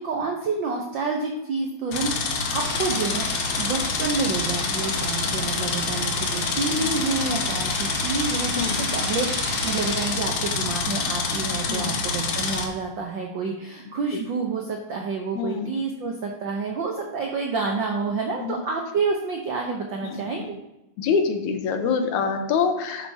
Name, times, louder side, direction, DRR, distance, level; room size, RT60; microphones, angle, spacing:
voice 1, 0.0-2.1 2.4-8.5 8.8-20.6, right 4 dB, 75° right, 1 dB, 1.0 m, -28 dB
sound 1, 1.9-12.6, left 4 dB, 60° left, 1.6 m, -27 dB
sound 2, 2.6-10.1, equal, 10° right, 0.6 m, -34 dB
voice 2, 8.6-8.9 11.7-11.9 14.1-14.2 15.3-15.7 18.1-18.6 20.0-20.5 21.0-23.1, left 5 dB, 85° left, 6 dB, 2.3 m, -26 dB
11.0 x 8.0 x 2.8 m, 0.91 s
omnidirectional pair, 3.4 m